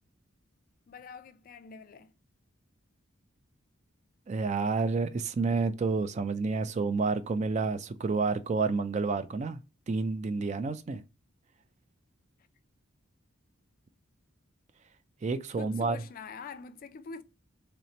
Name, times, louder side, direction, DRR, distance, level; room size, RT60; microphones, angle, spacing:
voice 1, 0.9-2.1 15.5-17.2, left 5 dB, 45° left, 0.3 m, -44 dB
voice 2, 4.3-9.6 9.9-11.0 15.2-16.0, right 4 dB, 35° right, 0.3 m, -29 dB
3.2 x 2.9 x 4.0 m
head